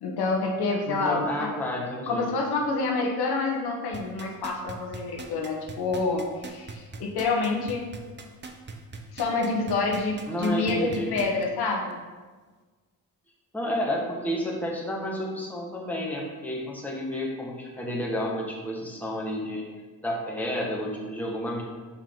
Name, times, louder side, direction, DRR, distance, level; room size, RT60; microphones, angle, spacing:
voice 1, 0.0-1.5 2.1-7.8 9.1-11.9, left 3 dB, 70° left, 0 dB, 1.1 m, -27 dB
voice 2, 0.9-2.3 10.3-11.1 13.5-19.6 20.0-21.6, equal, 5° left, -2 dB, 1.4 m, -31 dB
sound 1, 3.9-11.4 11.9-12.0, right 4 dB, 30° right, 0.7 m, -40 dB
5.6 x 4.8 x 3.7 m, 1.4 s
cardioid pair, 80°, 39 cm